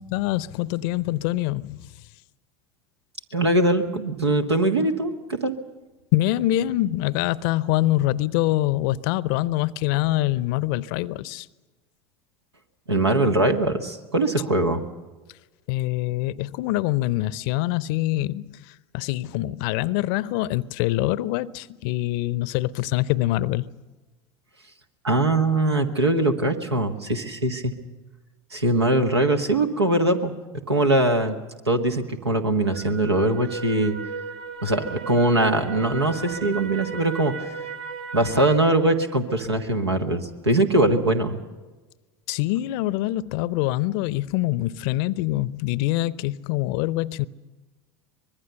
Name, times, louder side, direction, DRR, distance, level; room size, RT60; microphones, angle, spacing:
voice 1, 0.0-1.9 6.1-11.5 15.7-23.7 42.3-47.3, left 16 dB, 55° left, 0.6 m, -25 dB
voice 2, 3.3-5.5 12.9-14.8 25.0-27.7 28.5-30.3 30.7-31.4 31.7-34.0 34.6-37.3 38.1-41.3, right 2 dB, 85° right, 1.6 m, -22 dB
sound 1, 32.6-38.6, right 4 dB, 65° right, 2.3 m, -35 dB
24.5 x 21.0 x 6.9 m
figure-of-eight pair, 70°, 13 cm